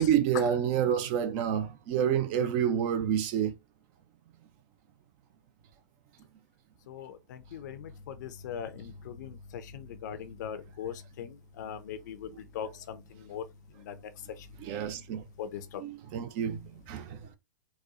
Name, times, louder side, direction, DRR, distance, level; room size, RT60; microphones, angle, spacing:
voice 1, 0.0-3.5 14.6-15.2 15.8-17.2, right 9 dB, 45° right, 0.6 m, -28 dB
voice 2, 6.9-13.4 13.8-13.9 14.4-14.5 15.4-15.8, left 8 dB, 60° left, 0.6 m, -40 dB
4.1 x 2.2 x 2.4 m
hypercardioid pair, 110°, 11 cm